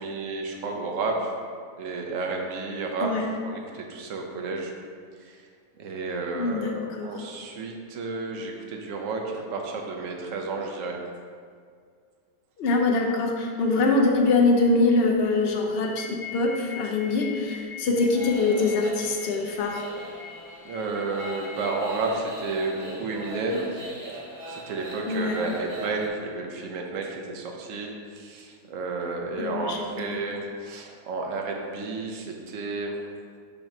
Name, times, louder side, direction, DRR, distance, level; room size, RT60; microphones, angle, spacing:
voice 1, 0.0-1.3 1.8-4.7 5.2-5.4 5.8-11.0 20.6-23.7 24.5-33.0, right 3 dB, 60° right, 1 dB, 1.0 m, -31 dB
voice 2, 6.3-7.1 12.6-19.8 25.1-25.4 29.4-30.2, left 3 dB, 75° left, 1 dB, 0.5 m, -24 dB
sound 1, 15.7-21.6, left 5 dB, 50° left, 1.2 m, -43 dB
sound 2, 18.0-26.1, right 1 dB, 90° right, 1.9 m, -40 dB
7.2 x 3.0 x 5.2 m, 2.1 s
omnidirectional pair, 1.8 m